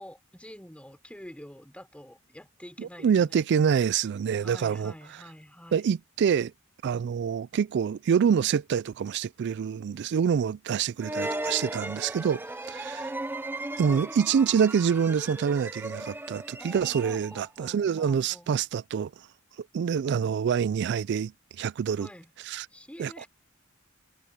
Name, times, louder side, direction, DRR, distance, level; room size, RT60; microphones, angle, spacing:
voice 1, 0.0-3.5 4.4-5.9 12.6-13.2 13.9-14.2 16.6-18.5 22.0-22.3 22.7-23.3, equal, 5° left, 4.0 m, -47 dB
voice 2, 2.8-4.9 5.7-6.5 6.8-12.4 12.7-13.1 13.8-19.1 19.7-21.3 21.6-22.1 22.5-22.7 23.0-23.3, right 7 dB, 55° right, 0.3 m, -26 dB
sound 1, 11.0-17.5, right 2 dB, 10° right, 0.7 m, -36 dB
head